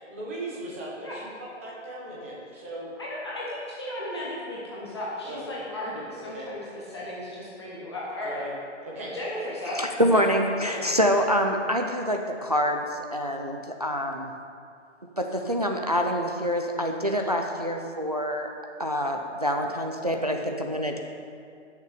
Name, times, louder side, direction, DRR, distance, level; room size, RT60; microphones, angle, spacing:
voice 1, 0.1-2.9 5.2-5.5 6.1-6.5 8.2-8.5 8.8-9.2 10.1-10.2 10.6-11.0, right 1 dB, 10° right, -5 dB, 1.0 m, -38 dB
voice 2, 3.0-8.4 9.1-9.8, left 1 dB, 20° left, -6 dB, 0.9 m, -35 dB
voice 3, 9.7-14.3 15.2-18.5 18.8-21.0, equal, 35° right, 3 dB, 0.4 m, -26 dB
15.5 x 6.6 x 4.9 m, 2.4 s
hypercardioid pair, 175°, 37 cm